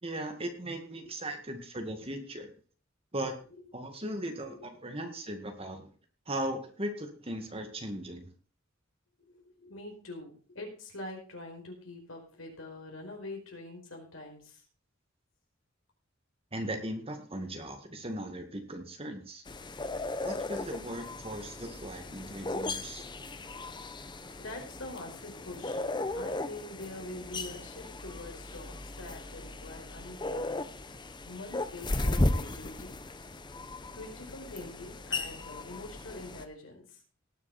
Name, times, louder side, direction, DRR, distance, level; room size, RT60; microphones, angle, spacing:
voice 1, 0.0-2.5 3.1-3.3 3.7-5.9 6.3-8.3 16.5-19.4 20.2-23.0, right 1 dB, 30° right, 5 dB, 2.0 m, -38 dB
voice 2, 4.3-4.6 9.2-14.6 24.4-32.9 33.9-37.0, left 2 dB, 80° left, 1 dB, 4.8 m, -45 dB
sound 1, 19.4-36.4, left 2 dB, 25° left, 0.8 m, -36 dB
18.5 x 7.0 x 4.3 m, 0.40 s
head